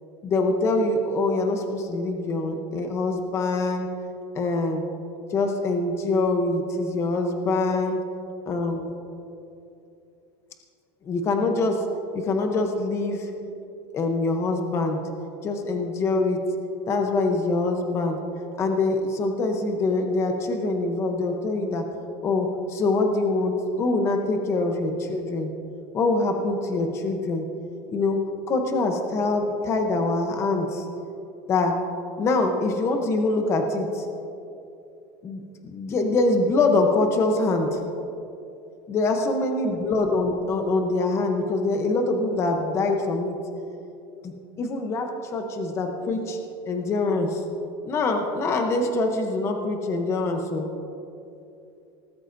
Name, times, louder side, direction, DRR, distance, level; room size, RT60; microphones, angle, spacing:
voice 1, 0.2-3.9 4.3-4.8 5.3-8.0 8.5-8.9 11.0-11.8 12.1-13.3 13.9-15.0 15.4-16.4 16.9-18.2 18.6-21.8 22.2-25.5 25.9-27.4 27.9-28.2 28.5-30.9 31.5-31.8 32.2-34.1 35.2-37.8 38.9-43.4 44.2-46.4 46.7-47.4 47.9-50.7, left 3 dB, 20° left, 4 dB, 0.8 m, -24 dB
19.0 x 13.0 x 2.6 m, 2.7 s
cardioid pair, 180°, 13 cm